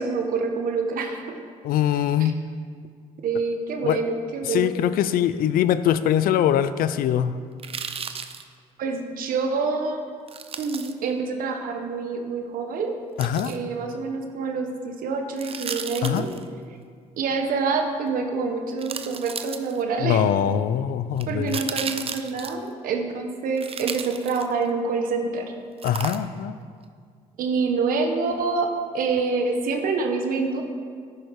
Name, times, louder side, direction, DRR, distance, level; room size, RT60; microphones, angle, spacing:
voice 1, 0.0-1.4 2.2-2.3 3.2-4.7 8.8-10.1 10.6-13.0 13.5-16.3 17.2-20.3 21.3-25.5 27.4-28.7 28.9-30.6, right 4 dB, 70° right, 4 dB, 1.3 m, -26 dB
voice 2, 1.6-2.4 3.8-4.0 4.5-7.4 13.2-13.5 16.0-16.2 20.0-21.6 25.8-26.5, left 10 dB, 75° left, 13 dB, 0.5 m, -22 dB
sound 1, 7.6-8.4 10.3-10.9 13.2-13.6 15.4-16.4 18.1-18.2 18.8-20.0 21.2-22.7 23.6-24.7 25.8-26.5 26.8-26.9, right 6 dB, 40° right, 0.7 m, -34 dB
11.0 x 9.9 x 4.8 m, 2.1 s
supercardioid pair, 80°, 15 cm